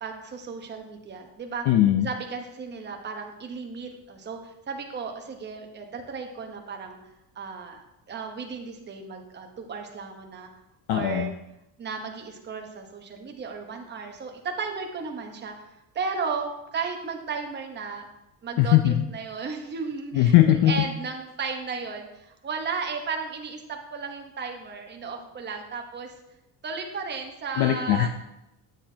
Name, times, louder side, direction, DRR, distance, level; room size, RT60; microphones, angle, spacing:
voice 1, 0.0-1.6 2.0-7.0 7.3-10.5 10.9-11.3 11.8-15.5 15.9-18.1 18.4-26.1 26.6-28.1, right 5 dB, 25° right, 3 dB, 1.0 m, -34 dB
voice 2, 1.7-2.1 10.9-11.3 18.6-19.0 20.1-20.9 27.6-28.1, left 12 dB, 75° left, 6 dB, 0.7 m, -20 dB
9.1 x 8.0 x 2.8 m, 0.89 s
cardioid pair, 165°, 38 cm